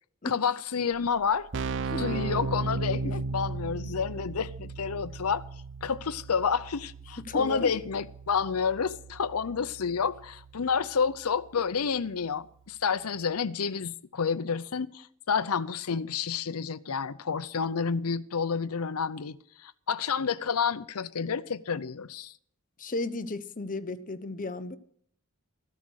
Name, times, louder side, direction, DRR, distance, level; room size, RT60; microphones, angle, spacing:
voice 1, 0.2-1.5 2.0-5.4 5.8-22.3, left 6 dB, 90° left, 0.7 m, -29 dB
Keyboard (musical), 0.9-1.0 1.2-11.9, right 3 dB, 60° right, 0.6 m, -37 dB
voice 2, 1.9-2.3 3.0-3.1 7.2-7.7 22.8-24.8, left 2 dB, 40° left, 0.9 m, -34 dB
14.5 x 12.5 x 6.4 m
head